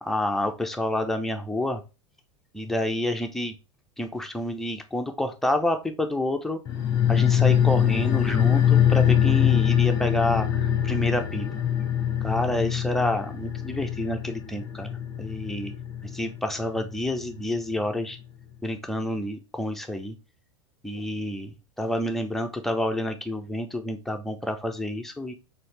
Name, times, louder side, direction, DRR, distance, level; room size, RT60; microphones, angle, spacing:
voice 1, 0.0-1.8 2.5-3.5 4.0-6.6 7.1-11.5 12.2-14.9 15.2-15.7 16.0-18.2 18.6-20.2 20.8-25.3, left 1 dB, ahead, 4 dB, 0.6 m, -28 dB
sound 1, 6.7-17.5 17.8-17.9, left 10 dB, 25° left, 0.9 m, -24 dB
4.2 x 2.8 x 3.2 m, 0.28 s
figure-of-eight pair, 85°, 16 cm